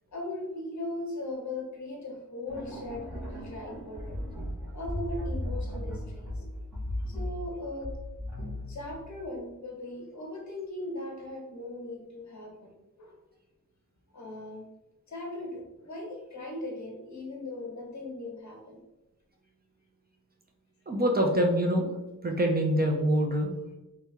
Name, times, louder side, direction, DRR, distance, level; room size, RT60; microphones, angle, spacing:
voice 1, 0.1-4.2 4.7-6.4 7.1-8.0 8.7-13.2 14.1-14.7 15.1-18.8, left 2 dB, 60° left, 1 dB, 0.9 m, -39 dB
sound 1, 2.5-9.4, left 1 dB, 5° right, 1.4 m, -36 dB
voice 2, 20.9-21.9 22.2-23.5, equal, 30° right, 1 dB, 0.5 m, -25 dB
3.3 x 3.1 x 3.4 m, 1.0 s
wide cardioid pair, 180°, 33 cm